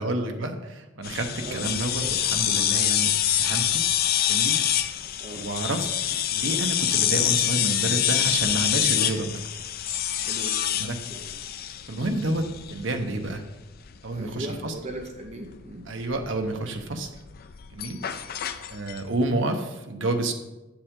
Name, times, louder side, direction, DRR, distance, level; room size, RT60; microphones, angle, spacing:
voice 1, 0.0-3.9 4.3-4.9 5.3-5.9 6.3-9.4 10.7-11.0 11.9-13.4 14.0-14.8 15.9-17.1 17.7-18.0 18.7-20.3, right 2 dB, 70° right, 5 dB, 0.9 m, -29 dB
sound 1, 1.0-19.1, left 11 dB, 50° left, 0.4 m, -26 dB
voice 2, 10.3-10.6 11.1-11.3 14.1-15.9, right 1 dB, 35° right, 3 dB, 0.7 m, -38 dB
7.6 x 7.4 x 3.7 m, 1.0 s
head